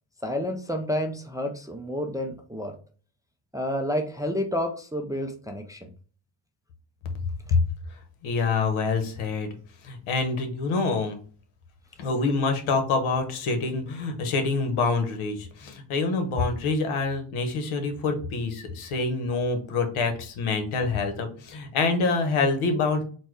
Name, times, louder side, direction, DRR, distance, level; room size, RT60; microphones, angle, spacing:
voice 1, 0.2-2.7 3.5-5.9, left 1 dB, 10° right, 3 dB, 0.4 m, -30 dB
voice 2, 8.2-9.5 9.8-11.2 12.0-23.0, left 4 dB, 85° left, 6 dB, 1.2 m, -26 dB
4.4 x 2.2 x 4.6 m, 0.41 s
cardioid pair, 125°, 48 cm